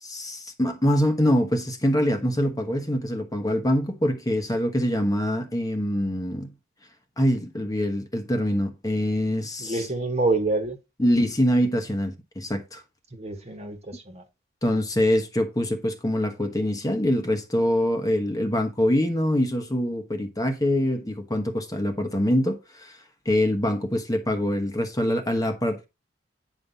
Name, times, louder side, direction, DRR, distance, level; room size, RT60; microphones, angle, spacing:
voice 1, 0.0-6.5 7.2-9.9 11.0-12.8 14.6-23.0 23.2-25.9, equal, 20° left, 1.2 m, -24 dB
voice 2, 9.6-10.8 13.1-14.2, right 3 dB, 35° right, 1.5 m, -27 dB
9.6 x 5.4 x 4.1 m
head